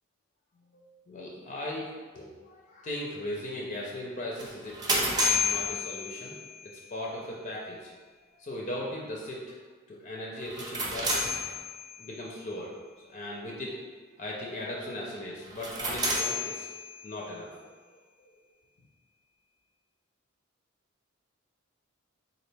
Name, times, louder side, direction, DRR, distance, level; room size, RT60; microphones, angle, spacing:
voice 1, 0.7-6.4 6.9-7.9 8.4-9.6 9.9-11.2 12.0-12.8 13.1-13.8 14.2-16.7 17.0-17.8, left 1 dB, 35° left, -3 dB, 0.5 m, -38 dB
sound 1, 4.4-6.6 10.4-12.1 15.4-17.2, left 1 dB, 20° right, 0.5 m, -30 dB
4.0 x 2.5 x 3.3 m, 1.4 s
head